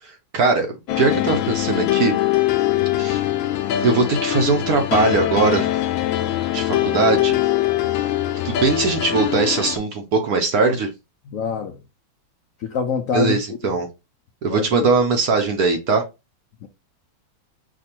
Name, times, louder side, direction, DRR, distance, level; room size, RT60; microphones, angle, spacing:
voice 1, 0.3-2.1 3.0-3.2 3.8-5.7 6.5-7.4 8.4-10.9 13.1-13.9 14.4-16.0, right 4 dB, 60° right, 1.1 m, -20 dB
sound 1, 0.9-9.8, left 13 dB, 85° left, 1.4 m, -22 dB
voice 2, 11.3-11.8 12.6-13.4 14.5-14.9 16.6-16.7, left 6 dB, 70° left, 0.7 m, -25 dB
5.0 x 2.3 x 4.3 m
omnidirectional pair, 2.1 m